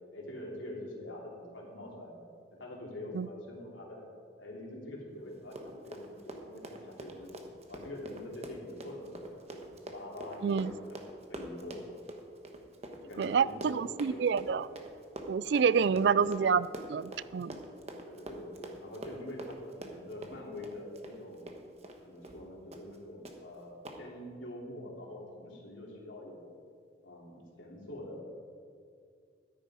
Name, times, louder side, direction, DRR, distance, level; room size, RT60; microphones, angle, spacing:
voice 1, 0.1-2.2 2.5-4.1 4.4-7.4 7.7-9.6 9.9-11.8 13.0-14.2 15.7-16.2 18.0-21.4 22.0-26.5 27.0-28.2, left 1 dB, 85° left, -3 dB, 3.2 m, -45 dB
Run, 5.4-22.0 22.2-22.4 22.7-23.0 23.2-23.4 23.8-24.0, right 1 dB, 35° right, 1.2 m, -45 dB
voice 2, 13.2-14.7 15.3-17.6, right 6 dB, 60° right, 18 dB, 0.3 m, -28 dB
13.0 x 10.5 x 5.0 m, 2.2 s
head